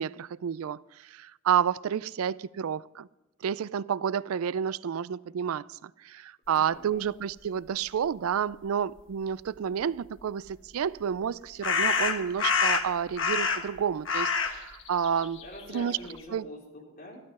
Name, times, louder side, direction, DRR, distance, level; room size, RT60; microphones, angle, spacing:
voice 1, 0.0-3.1 3.4-15.4 15.7-16.0 16.3-16.5, right 8 dB, 85° right, 0.4 m, -30 dB
voice 2, 6.5-7.0 15.4-17.2, equal, 45° left, 4.0 m, -45 dB
sound 1, 10.5-10.6 11.6-13.8 14.1-16.2, left 5 dB, 60° left, 1.3 m, -27 dB
13.5 x 12.5 x 5.4 m
head